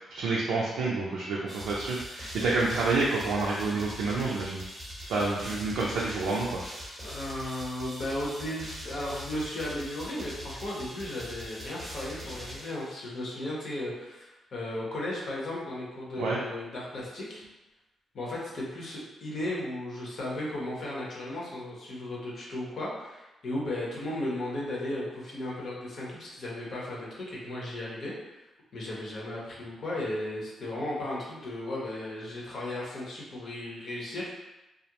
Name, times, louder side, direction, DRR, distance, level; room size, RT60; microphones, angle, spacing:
voice 1, 0.1-4.6 5.1-6.5 16.2-16.4, right 3 dB, 85° right, -5 dB, 0.4 m, -28 dB
sound 1, 1.5-13.4, equal, ahead, 0.8 m, -42 dB
voice 2, 7.0-17.4 18.1-28.1 28.7-34.3, left 1 dB, 60° left, -4 dB, 0.8 m, -35 dB
2.4 x 2.0 x 2.8 m, 1.0 s
cardioid pair, 70°, 0 cm